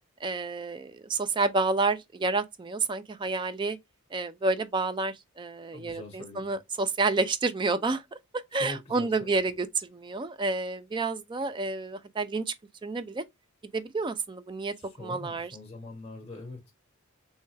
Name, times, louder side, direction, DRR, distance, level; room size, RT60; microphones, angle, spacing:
voice 1, 0.2-3.8 4.1-8.0 8.5-12.5 12.8-13.2 13.7-14.7 15.0-15.6, right 3 dB, 20° right, 0.3 m, -29 dB
voice 2, 5.7-6.5 8.5-9.4 14.7-16.7, left 2 dB, 25° left, 0.9 m, -43 dB
3.3 x 3.2 x 3.2 m
head